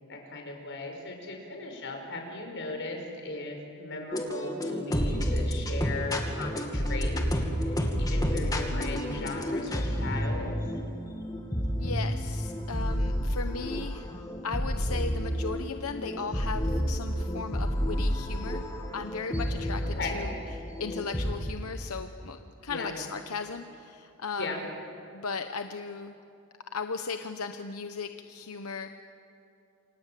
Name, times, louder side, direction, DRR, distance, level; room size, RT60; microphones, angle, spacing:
voice 1, 0.1-10.5 19.8-20.2 22.7-22.9 24.4-24.6, left 3 dB, 60° left, 3 dB, 5.3 m, -37 dB
sound 1, 4.1-21.4, equal, 15° left, 2.4 m, -30 dB
voice 2, 8.7-9.4 11.8-14.1 14.4-18.6 18.9-24.7 25.1-26.1 26.7-28.9, left 5 dB, 90° left, 7 dB, 1.0 m, -37 dB
28.0 x 26.5 x 7.6 m, 2.7 s
head